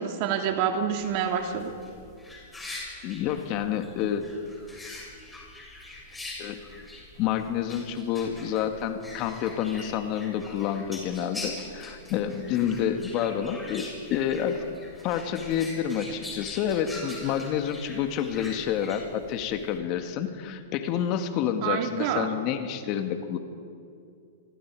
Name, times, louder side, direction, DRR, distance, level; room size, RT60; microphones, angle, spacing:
voice 1, 0.0-1.7 21.6-22.3, right 8 dB, 50° right, 4 dB, 2.7 m, -27 dB
sound 1, 1.0-19.8, left 2 dB, 10° left, 6.8 m, -43 dB
voice 2, 3.0-4.2 6.4-6.6 7.2-14.6 15.0-23.4, left 9 dB, 40° left, 7 dB, 2.1 m, -29 dB
28.0 x 24.0 x 5.0 m, 2.4 s
hypercardioid pair, 120°, 0 cm